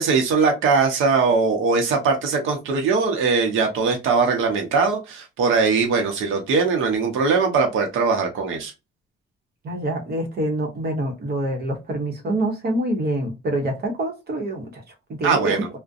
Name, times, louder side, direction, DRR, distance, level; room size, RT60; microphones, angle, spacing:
voice 1, 0.0-8.7 15.2-15.7, right 4 dB, 85° right, 0.7 m, -20 dB
voice 2, 9.6-14.7 15.1-15.6, right 1 dB, 50° right, 1.0 m, -26 dB
2.4 x 2.1 x 2.5 m
cardioid pair, 90°, 20 cm